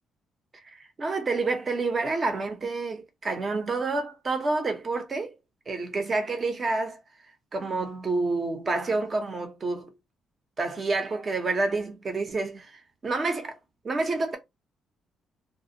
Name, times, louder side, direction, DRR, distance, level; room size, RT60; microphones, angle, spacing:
voice 1, 0.5-5.3 5.7-7.0 7.5-9.9 10.6-13.6 13.8-14.4, right 3 dB, 30° right, 0.7 m, -28 dB
2.5 x 2.2 x 2.8 m
cardioid pair, 125°, 0 cm